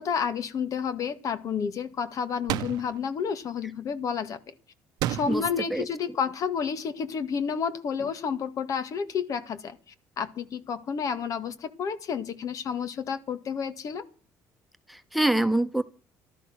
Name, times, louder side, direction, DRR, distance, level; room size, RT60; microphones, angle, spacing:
voice 1, 0.0-4.4 5.1-9.8 10.2-14.0, left 6 dB, 55° left, 1.8 m, -30 dB
sound 1, 2.5-3.0 5.0-5.6, right 13 dB, 80° right, 0.8 m, -30 dB
voice 2, 14.9-15.8, right 1 dB, ahead, 1.5 m, -25 dB
15.5 x 12.5 x 6.1 m
supercardioid pair, 85°, 7 cm